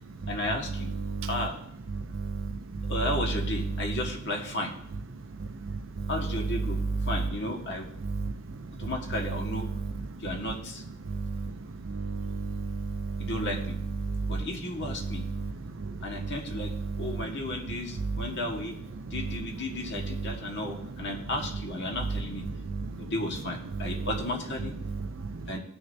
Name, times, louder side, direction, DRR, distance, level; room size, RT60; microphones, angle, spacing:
voice 1, 0.3-0.9 1.3-1.6 2.9-4.7 6.1-7.9 8.8-9.7 10.2-10.8 13.2-13.8 14.3-15.2 16.0-18.7 19.1-22.5 23.0-24.7 25.5-25.6, left 1 dB, 50° left, 1 dB, 1.6 m, -34 dB
voice 2, 1.9-2.9 5.4-6.1 8.0-8.3 9.7-9.9 11.1-11.6 11.8-13.3 14.0-14.4 15.0-15.5 15.8-16.3 16.7-17.2 18.0-18.2 22.7-23.1 23.8-24.1 24.9-25.4, right 4 dB, 60° right, 9 dB, 0.5 m, -33 dB
17.5 x 6.3 x 2.7 m, 0.75 s
head